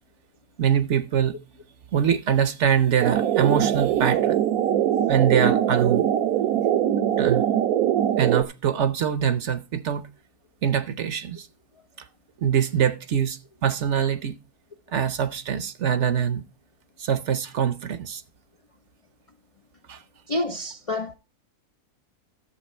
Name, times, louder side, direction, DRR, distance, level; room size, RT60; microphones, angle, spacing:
voice 1, 0.6-1.3 1.9-4.4 5.1-6.1 7.2-7.4 8.2-10.1 10.6-11.5 12.4-14.3 14.9-16.4 17.0-18.2 19.9-20.0, right 8 dB, 55° right, 0.9 m, -23 dB
sound 1, 3.0-8.4, right 11 dB, 75° right, 1.2 m, -22 dB
voice 2, 20.3-21.1, left 2 dB, 60° left, 0.3 m, -28 dB
12.0 x 7.3 x 4.2 m
omnidirectional pair, 1.6 m